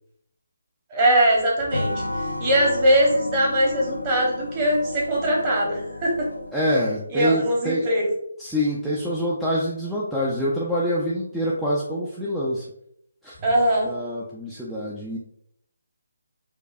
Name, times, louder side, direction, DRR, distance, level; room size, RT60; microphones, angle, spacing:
voice 1, 0.9-6.3 7.1-8.1 13.4-13.9, right 1 dB, 25° right, -3 dB, 1.2 m, -21 dB
sound 1, 1.7-6.8, left 1 dB, 85° left, 0.5 m, -33 dB
voice 2, 6.5-7.9 8.4-12.7 13.2-13.4 13.8-15.2, equal, ahead, -8 dB, 0.4 m, -26 dB
4.7 x 2.2 x 2.6 m, 0.71 s
figure-of-eight pair, 145°, 0 cm